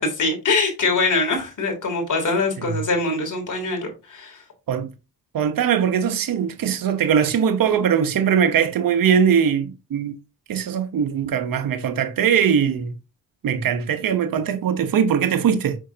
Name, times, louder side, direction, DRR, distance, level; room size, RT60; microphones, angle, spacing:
voice 1, 0.0-4.4, left 3 dB, 55° left, 3.4 m, -23 dB
voice 2, 5.3-10.1 10.5-12.9 13.4-15.8, right 7 dB, 70° right, 1.2 m, -21 dB
6.3 x 5.6 x 2.9 m
supercardioid pair, 60°, 35 cm